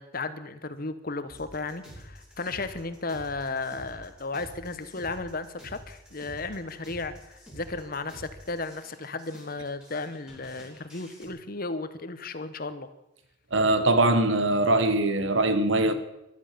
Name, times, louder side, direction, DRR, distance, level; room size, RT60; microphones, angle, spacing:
voice 1, 0.0-12.9, left 3 dB, 50° left, 1.2 m, -34 dB
sound 1, 1.3-11.3, right 1 dB, 5° right, 5.8 m, -48 dB
voice 2, 13.5-15.9, right 2 dB, 70° right, 1.4 m, -22 dB
14.5 x 11.5 x 6.9 m
head